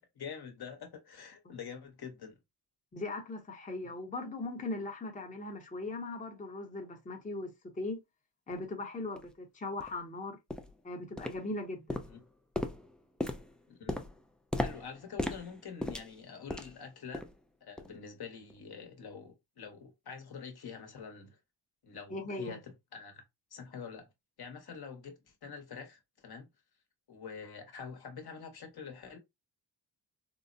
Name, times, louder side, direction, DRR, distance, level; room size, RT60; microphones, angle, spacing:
voice 1, 0.2-2.4 12.1-12.2 13.7-14.0 14.6-17.3 17.6-21.4 21.8-23.2 23.5-24.1 24.4-26.5 27.1-29.2, left 6 dB, 60° left, 1.0 m, -46 dB
voice 2, 2.9-8.0 8.5-10.4 10.8-12.1 22.1-22.6, left 2 dB, 20° left, 0.8 m, -39 dB
sound 1, 8.5-8.6 9.2-9.3 9.8-10.0 10.5-10.8 11.2-11.6 11.9-16.8 17.1-17.4 17.8-18.0 18.5-18.6, left 1 dB, ahead, 0.3 m, -38 dB
3.8 x 2.0 x 2.6 m
cardioid pair, 85°, 44 cm